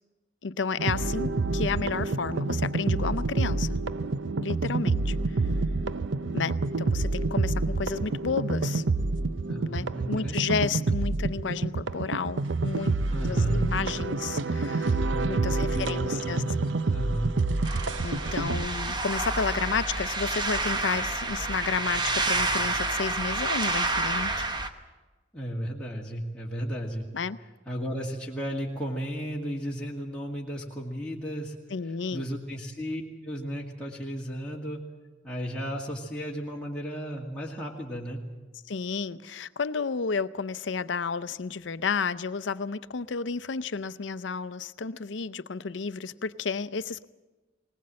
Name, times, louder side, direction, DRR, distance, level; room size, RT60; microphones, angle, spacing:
voice 1, 0.4-3.8 4.4-5.4 6.3-8.8 9.6-13.0 13.3-16.4 18.0-24.5 27.1-27.4 31.7-32.2 38.7-47.0, left 5 dB, 75° left, 14 dB, 0.6 m, -32 dB
sound 1, 0.8-18.6, right 3 dB, 75° right, 0.6 m, -28 dB
voice 2, 9.5-10.8 13.1-13.7 15.1-15.3 15.6-17.4 25.3-27.0 27.7-31.5 32.1-34.8 35.2-38.2, equal, 5° left, -4 dB, 2.2 m, -34 dB
sound 2, 17.6-24.7, right 2 dB, 25° right, 1.0 m, -29 dB
20.5 x 19.5 x 7.6 m, 1.2 s
head